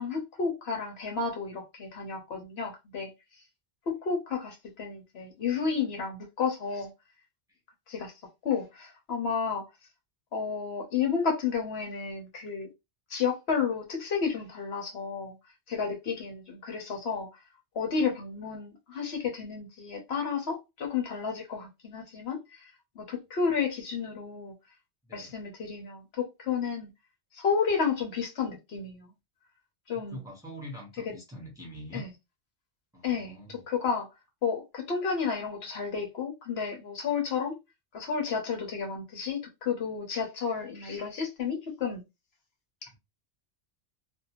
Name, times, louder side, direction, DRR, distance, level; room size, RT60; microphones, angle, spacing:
voice 1, 0.0-3.1 3.9-6.9 7.9-8.1 8.4-9.6 10.3-12.7 13.1-15.3 15.7-17.3 17.7-22.7 23.0-24.5 25.1-26.9 27.3-29.1 29.9-30.2 31.9-32.1 33.0-34.1 34.4-37.5 37.9-42.0, left 6 dB, 65° left, 1.0 m, -31 dB
voice 2, 25.0-25.4 30.1-32.0 32.9-33.6, equal, 5° right, 0.9 m, -44 dB
2.6 x 2.3 x 2.9 m
omnidirectional pair, 1.2 m